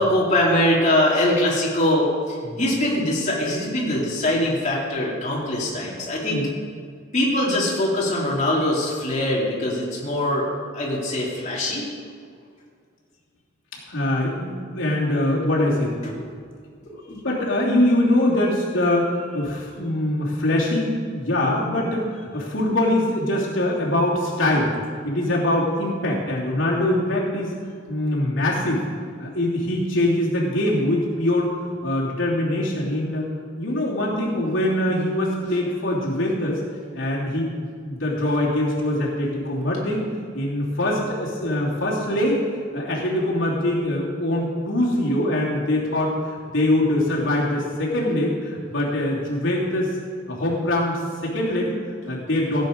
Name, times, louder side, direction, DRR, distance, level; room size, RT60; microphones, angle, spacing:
voice 1, 0.0-6.4 7.1-10.5 10.7-11.9 16.0-16.2, left 1 dB, 40° left, -5 dB, 2.6 m, -22 dB
voice 2, 13.9-16.0 16.8-24.7 25.0-27.5 27.9-28.9 29.2-31.5 31.8-33.2 33.6-36.6 36.9-37.5 37.9-40.0 40.3-42.4 42.7-49.9 50.3-52.6, left 1 dB, 85° left, -5 dB, 2.9 m, -23 dB
16.0 x 8.2 x 5.1 m, 2.1 s
head